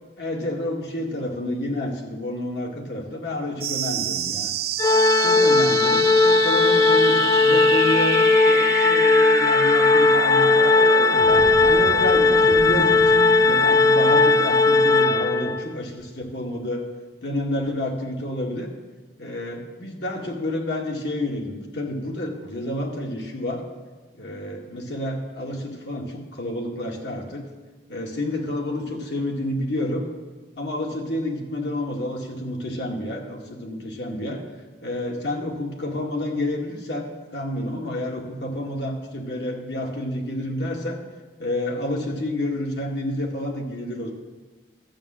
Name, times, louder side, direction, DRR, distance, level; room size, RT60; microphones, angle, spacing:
voice 1, 0.2-4.5 5.2-10.8 11.3-16.8 17.2-18.7 19.2-23.6 24.1-27.4 27.9-30.1 30.6-34.4 34.8-37.1 37.3-41.0 41.4-44.1, left 1 dB, 75° left, 0 dB, 2.1 m, -29 dB
sound 1, 3.6-14.6, right 8 dB, 60° right, 0.7 m, -29 dB
Organ, 4.8-15.7, left 3 dB, 20° left, 0.3 m, -17 dB
12.5 x 7.4 x 7.6 m, 1.3 s
head